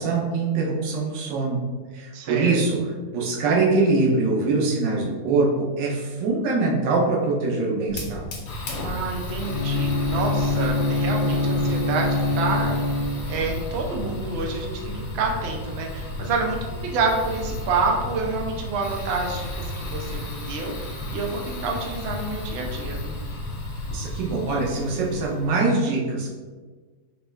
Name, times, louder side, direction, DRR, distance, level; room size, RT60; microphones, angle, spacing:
voice 1, 0.0-1.6 1.9-2.8 3.1-8.2 23.9-26.3, right 3 dB, 90° right, -1 dB, 1.4 m, -23 dB
voice 2, 2.1-2.6 8.8-13.0 13.3-23.2, right 3 dB, 70° right, 0 dB, 0.6 m, -28 dB
Fire, 7.9-25.5, left 1 dB, 70° left, 1.3 m, -33 dB
Bowed string instrument, 9.4-13.6, left 3 dB, 25° right, 1.1 m, -24 dB
5.2 x 2.3 x 3.3 m, 1.4 s
omnidirectional pair, 1.9 m